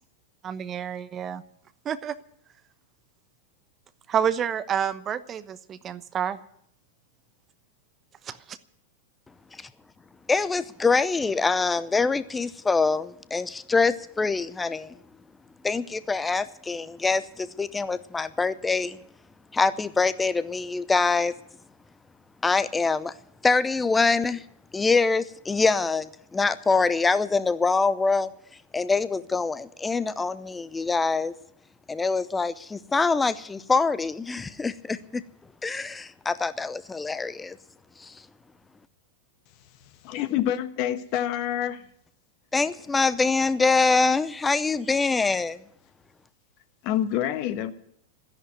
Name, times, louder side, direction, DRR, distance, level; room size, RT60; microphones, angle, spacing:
voice 1, 0.4-1.4 1.8-2.2 4.1-6.4 8.3-8.6, right 8 dB, 30° right, 0.9 m, -29 dB
voice 2, 10.3-15.0 15.6-19.0 19.5-21.3 22.4-23.1 23.4-24.4 24.7-28.3 28.7-31.3 31.9-35.2 35.6-37.6 38.0-38.1 42.5-45.6, left 4 dB, 15° left, 0.7 m, -24 dB
voice 3, 40.0-41.9 46.8-47.7, left 11 dB, 45° left, 1.2 m, -27 dB
13.0 x 10.5 x 9.4 m
figure-of-eight pair, 90°, 0 cm